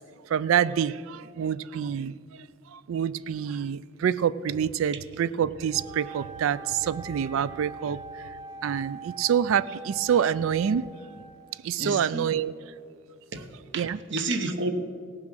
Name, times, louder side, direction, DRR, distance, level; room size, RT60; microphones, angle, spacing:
voice 1, 0.3-2.1 2.7-8.2 8.6-10.8 11.6-12.5 13.7-14.0, right 8 dB, 70° right, 18 dB, 0.3 m, -26 dB
Wind instrument woodwind instrument, 5.7-11.6, right 4 dB, 20° right, 1.0 m, -43 dB
voice 2, 11.8-12.3 13.3-13.4 13.7-14.7, right 2 dB, 55° right, 8 dB, 0.9 m, -30 dB
17.0 x 7.4 x 6.2 m, 2.2 s
head